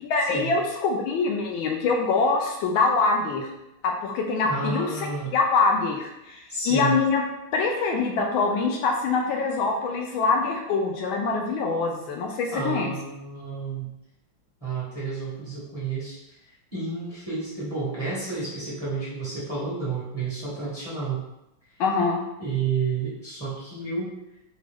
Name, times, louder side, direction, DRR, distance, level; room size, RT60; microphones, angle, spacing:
voice 1, 0.1-3.5 3.8-5.1 5.3-7.2 7.5-12.9 21.8-22.2, left 4 dB, 80° left, 1 dB, 1.3 m, -24 dB
voice 2, 4.4-5.3 6.5-7.0 12.5-13.9 14.6-16.4 16.7-21.2 22.4-24.1, right 4 dB, 20° right, -9 dB, 1.2 m, -30 dB
4.9 x 2.3 x 3.5 m, 0.87 s
omnidirectional pair, 2.3 m